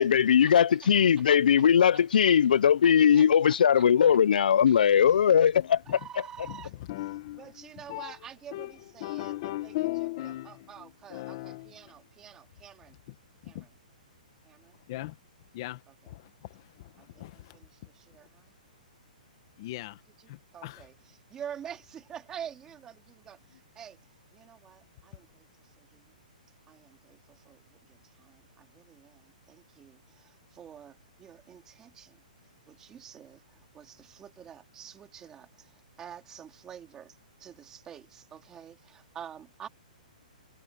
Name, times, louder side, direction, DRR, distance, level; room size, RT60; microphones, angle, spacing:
voice 1, 0.0-5.8, left 8 dB, 75° left, 0.4 m, -20 dB
voice 2, 2.8-3.8 4.7-5.1 5.9-6.7 7.4-9.8 10.2-12.9 13.4-13.7 14.5-14.8 17.0-17.3 17.5-18.5 20.5-20.9 21.3-24.0 24.3-25.4 25.8-26.0 26.7-27.6 27.9-32.2 32.7-39.7, right 9 dB, 10° right, 3.0 m, -47 dB
voice 3, 5.6-6.0 6.5-8.2 8.5-12.0 13.1-13.2 13.4-13.7 14.9-15.2 15.5-17.6 19.6-20.0 20.3-20.9, left 17 dB, 30° left, 1.1 m, -38 dB
hypercardioid pair, 175°, 5 cm